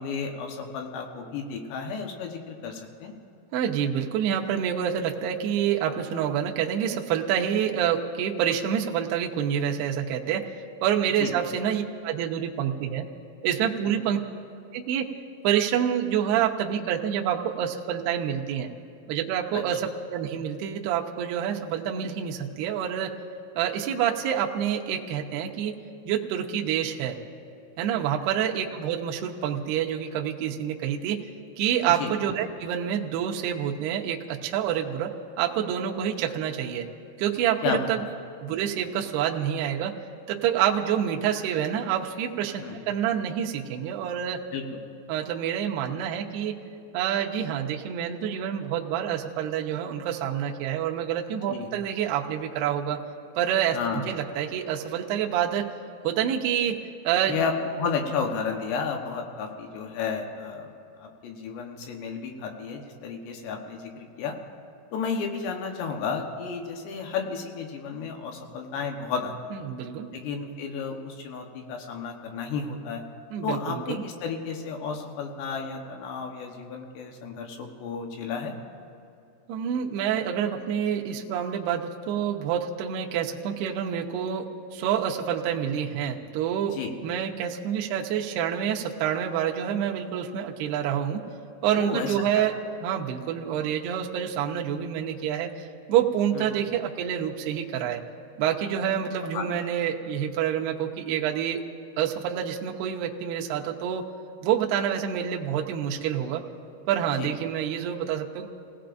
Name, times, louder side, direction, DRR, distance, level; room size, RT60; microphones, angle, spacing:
voice 1, 0.0-3.1 11.2-11.3 19.5-19.6 31.9-32.1 37.6-37.8 42.6-42.8 44.5-44.6 51.5-51.7 53.7-54.0 57.3-60.7 61.0-64.4 64.9-69.6 70.1-73.0 73.4-78.5 86.7-86.9 91.8-92.5 96.4-96.5 99.3-99.5 107.2-107.3, left 5 dB, 70° left, 3 dB, 2.9 m, -32 dB
voice 2, 3.5-10.5 10.8-13.1 13.4-14.2 14.7-15.1 15.4-18.7 19.1-23.1 23.6-25.8 26.1-27.2 27.8-31.2 31.6-36.9 37.2-38.0 38.4-40.0 40.3-44.5 45.1-46.6 46.9-53.0 53.4-55.7 56.0-56.8 57.0-57.4 69.5-70.1 73.3-74.0 79.5-91.2 91.6-98.0 98.4-101.6 102.0-104.1 104.4-106.4 106.9-108.5, right 9 dB, 85° right, 0 dB, 2.3 m, -27 dB
29.5 x 17.5 x 2.6 m, 2.5 s
omnidirectional pair, 5.8 m